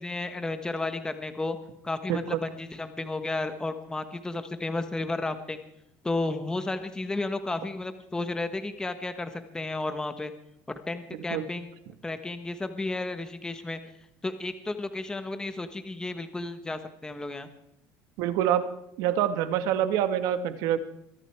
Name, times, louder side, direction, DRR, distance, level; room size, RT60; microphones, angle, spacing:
voice 1, 0.0-1.6 1.8-5.6 6.0-10.3 10.9-13.8 14.2-17.5, left 2 dB, 10° left, 8 dB, 1.4 m, -33 dB
voice 2, 2.1-2.4 11.1-11.5 18.2-18.6 19.0-20.8, right 10 dB, 75° right, 10 dB, 1.7 m, -26 dB
23.0 x 13.0 x 4.7 m, 0.78 s
cardioid pair, 115°, 6 cm